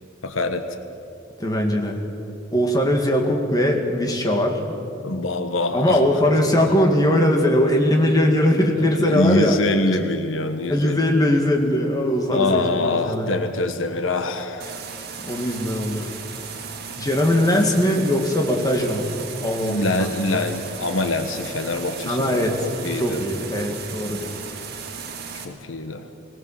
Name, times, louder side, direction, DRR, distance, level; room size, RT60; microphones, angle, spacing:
voice 1, 0.2-0.6 5.0-6.0 8.7-11.4 12.3-14.8 19.6-23.2 25.4-26.1, left 2 dB, 85° left, 8 dB, 1.2 m, -25 dB
voice 2, 1.4-2.0 2.5-4.7 5.7-9.6 10.7-13.3 15.2-16.1 17.0-19.1 19.4-19.9 20.3-20.4 22.1-24.3, left 1 dB, 20° left, 2 dB, 2.0 m, -20 dB
sound 1, 14.6-25.4, right 6 dB, 55° right, 1.9 m, -36 dB
19.5 x 18.0 x 7.4 m, 2.6 s
head